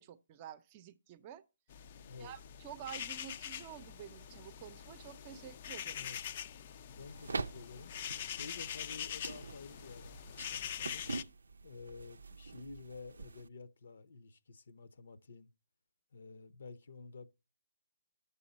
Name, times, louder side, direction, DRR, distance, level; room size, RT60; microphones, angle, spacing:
voice 1, 0.0-1.4 2.2-6.1, right 10 dB, 30° right, 0.6 m, -50 dB
sound 1, 1.7-11.2, left 9 dB, 40° left, 0.5 m, -44 dB
voice 2, 2.0-2.4 5.9-6.3 6.9-7.9 8.3-11.0 11.6-15.5 16.1-17.3, left 4 dB, 70° left, 0.8 m, -51 dB
sound 2, 7.0-13.5, right 3 dB, 80° right, 0.5 m, -45 dB
11.0 x 7.0 x 4.1 m
hypercardioid pair, 150°, 0 cm